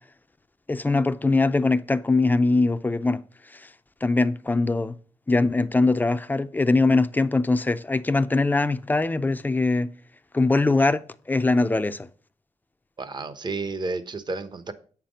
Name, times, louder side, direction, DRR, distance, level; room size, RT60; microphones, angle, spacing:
voice 1, 0.7-3.2 4.0-5.0 5.3-9.9 10.3-11.0 11.3-12.1, left 3 dB, 15° left, 0.5 m, -22 dB
voice 2, 13.0-14.7, right 3 dB, 35° right, 0.9 m, -31 dB
8.7 x 5.9 x 5.0 m
wide cardioid pair, 130°, 12 cm